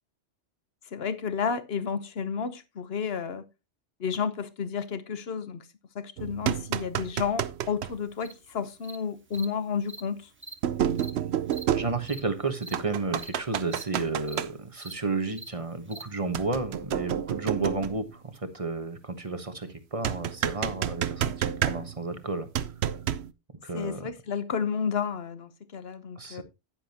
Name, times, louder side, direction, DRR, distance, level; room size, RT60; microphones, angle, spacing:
voice 1, 0.9-3.4 4.0-5.6 5.9-10.3 17.6-17.7 23.7-26.4, left 6 dB, 60° left, 1.2 m, -31 dB
sound 1, 6.2-7.9 9.4-9.5 10.6-12.4 12.7-14.5 16.3-18.1 20.0-22.1 22.5-23.3, right 10 dB, 70° right, 0.9 m, -30 dB
Cricket, 8.2-8.3 8.8-9.0 9.3-9.5 9.9-10.0 10.4-10.5 11.0-11.1 11.5-11.6 12.1-12.2 12.6-12.7 13.2-13.3 13.7-13.8 14.3-14.4 14.8-14.9 15.4-15.5 15.9-16.0, right 3 dB, 10° right, 0.8 m, -42 dB
voice 2, 11.7-22.5 23.6-24.1 26.2-26.4, right 3 dB, 30° right, 1.2 m, -32 dB
10.0 x 10.0 x 2.9 m
omnidirectional pair, 1.2 m